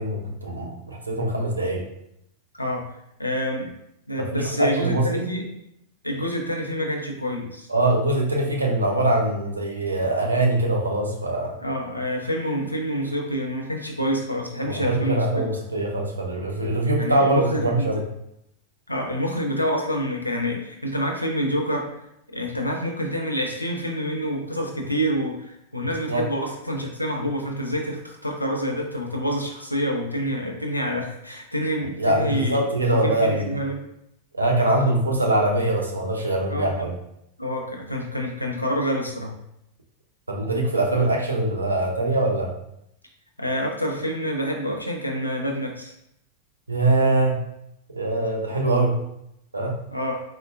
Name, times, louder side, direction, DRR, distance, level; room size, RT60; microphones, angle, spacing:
voice 1, 0.0-1.8 4.2-5.2 7.7-11.5 14.7-18.0 26.1-26.2 32.0-33.5 34.3-36.9 40.3-42.5 46.7-47.4 47.9-49.0 49.5-49.7, right 2 dB, 80° right, 1 dB, 0.5 m, -23 dB
voice 2, 2.5-2.9 3.2-3.7 4.1-5.5 6.0-7.7 11.6-15.5 17.0-17.9 18.9-21.9 22.3-33.8 36.5-36.9 37.4-39.3 43.4-45.9 49.9-50.2, equal, 85° left, 1 dB, 0.5 m, -27 dB
3.8 x 2.1 x 2.3 m, 0.79 s
figure-of-eight pair, 90°, 0 cm